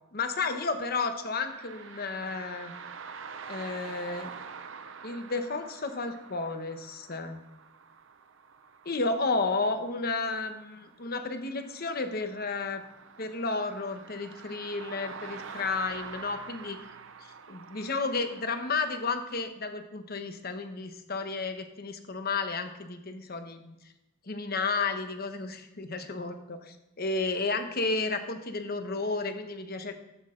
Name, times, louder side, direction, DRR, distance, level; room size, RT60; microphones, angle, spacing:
voice 1, 0.1-2.7 3.5-4.3 5.0-7.4 8.8-12.8 13.2-16.8 17.5-23.7 24.3-29.9, left 3 dB, 50° left, 7 dB, 1.0 m, -32 dB
sound 1, 1.5-19.4, right 5 dB, 70° right, 0.7 m, -46 dB
14.0 x 6.4 x 3.8 m, 0.93 s
head